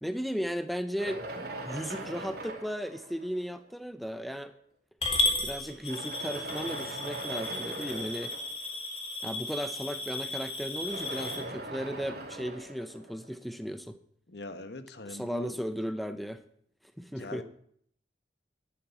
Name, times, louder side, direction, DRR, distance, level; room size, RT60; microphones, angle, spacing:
voice 1, 0.0-4.5 5.4-8.4 9.2-14.0 15.1-16.4 17.0-17.4, equal, ahead, 10 dB, 0.6 m, -36 dB
sound 1, 1.0-3.7 4.5-4.6 5.7-8.7 10.6-13.7, right 2 dB, 60° right, 3.2 m, -41 dB
Coin (dropping) / Glass, 5.0-11.4, left 2 dB, 35° left, 3.6 m, -34 dB
voice 2, 14.3-15.6 17.2-17.4, left 1 dB, 70° left, 10 dB, 1.2 m, -41 dB
11.5 x 7.6 x 9.4 m, 0.65 s
head